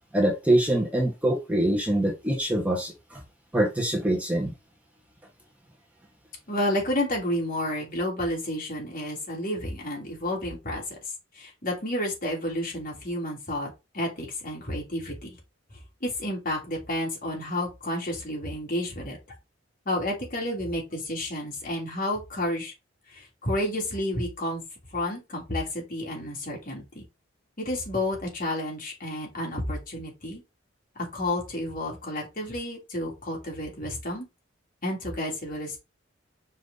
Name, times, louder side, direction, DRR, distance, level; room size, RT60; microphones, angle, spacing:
voice 1, 0.1-3.2 3.5-4.5, right 1 dB, 5° right, 1.6 m, -24 dB
voice 2, 6.5-10.8 11.4-13.7 13.9-15.4 16.0-19.2 19.9-22.7 23.1-24.6 24.9-27.0 27.6-30.4 31.0-34.3 34.8-35.8, left 1 dB, 45° left, 3.3 m, -30 dB
5.7 x 4.7 x 4.0 m
head